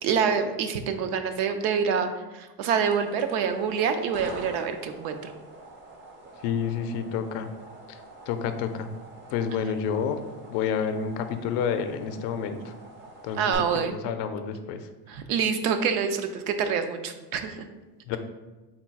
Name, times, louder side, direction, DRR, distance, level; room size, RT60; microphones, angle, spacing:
voice 1, 0.0-5.3 13.3-14.0 15.1-17.6, right 6 dB, 70° right, 7 dB, 0.6 m, -26 dB
sound 1, 2.8-13.5, right 2 dB, 25° right, 0.5 m, -46 dB
voice 2, 6.4-7.5 8.3-8.9 9.3-10.2 10.5-12.7 13.2-14.8 18.1-18.2, left 7 dB, 60° left, 8 dB, 0.5 m, -29 dB
3.8 x 2.3 x 4.5 m, 1.2 s
supercardioid pair, 135°, 46 cm